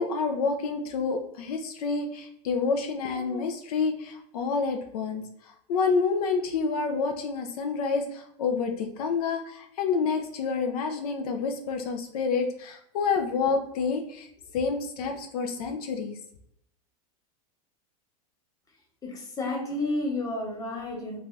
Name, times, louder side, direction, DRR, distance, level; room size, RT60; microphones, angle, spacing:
voice 1, 0.0-14.3 14.5-16.2, left 5 dB, 75° left, 4 dB, 0.5 m, -28 dB
voice 2, 19.0-21.2, left 2 dB, 20° left, -2 dB, 0.9 m, -31 dB
2.6 x 2.3 x 3.1 m, 0.74 s
supercardioid pair, 125°, 19 cm